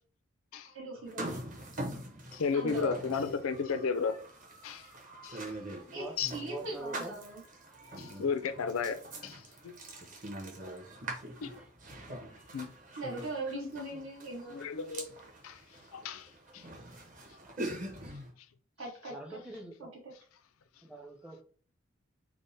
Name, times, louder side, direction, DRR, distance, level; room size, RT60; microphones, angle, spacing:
voice 1, 0.6-1.4 2.5-3.0 5.9-7.4 13.0-14.6 18.8-19.4 19.8-19.9, right 2 dB, 75° right, 1.3 m, -40 dB
sound 1, 1.1-18.3, right 1 dB, 40° right, 0.8 m, -44 dB
voice 2, 2.3-4.2 4.6-4.9 5.2-5.4 6.2-6.3 8.0-9.7 11.4-11.6 12.5-12.7 13.5-13.9 14.5-15.1 15.4-15.6 15.9-16.3 16.5-16.6, left 5 dB, 90° left, 0.4 m, -33 dB
voice 3, 5.9-7.2 11.4-11.7 13.9-14.1 16.6-16.9 17.5-17.6 18.0-18.1 19.1-19.9 20.8-21.4, right 2 dB, 5° right, 0.5 m, -45 dB
3.5 x 2.0 x 4.0 m
head